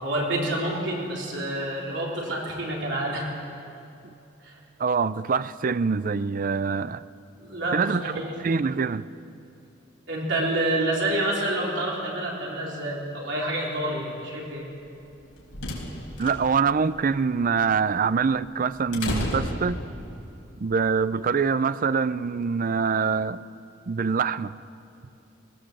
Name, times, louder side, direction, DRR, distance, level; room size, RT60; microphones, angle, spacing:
voice 1, 0.0-3.3 4.4-4.6 7.4-8.3 10.1-14.6, right 1 dB, 65° right, 4.1 m, -28 dB
voice 2, 4.8-7.0 7.7-8.0 8.4-9.1 16.2-19.8 20.6-23.4 23.9-24.6, right 5 dB, 45° right, 0.4 m, -24 dB
sound 1, 15.0-20.3, left 1 dB, 75° left, 4.5 m, -34 dB
19.5 x 18.5 x 7.5 m
head